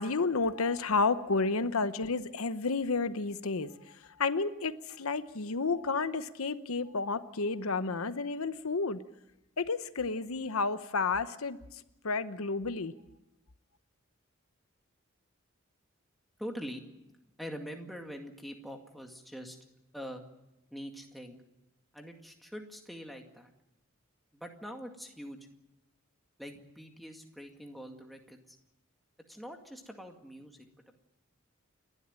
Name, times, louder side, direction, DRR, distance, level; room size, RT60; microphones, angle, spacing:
voice 1, 0.0-9.0 9.6-11.6 12.0-12.9, left 4 dB, 85° left, 12 dB, 0.9 m, -31 dB
voice 2, 16.4-16.8 17.4-19.6 19.9-20.2 20.7-21.4 21.9-23.5 24.3-25.4 26.4-28.6 29.3-30.7, equal, ahead, 2 dB, 2.1 m, -44 dB
29.5 x 12.0 x 9.0 m, 0.91 s
head